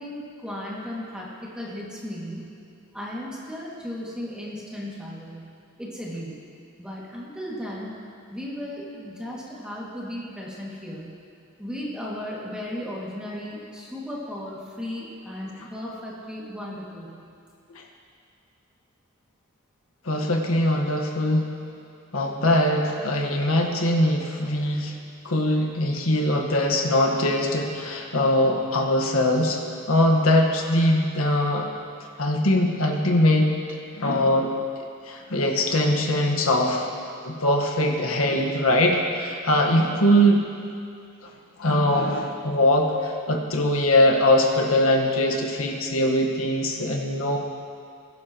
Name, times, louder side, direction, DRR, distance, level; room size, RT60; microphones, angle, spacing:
voice 1, 0.0-2.5 2.9-5.5 5.8-6.4 6.8-8.0 8.3-11.2 11.6-17.3, left 1 dB, 5° right, -6 dB, 2.2 m, -35 dB
voice 2, 20.0-21.5 22.1-25.0 25.2-29.6 29.9-31.7 32.2-34.5 35.0-36.9 37.2-40.4 41.2-41.3 41.6-47.4, left 1 dB, 80° left, 1 dB, 1.5 m, -22 dB
21.0 x 12.0 x 3.1 m, 2.4 s
head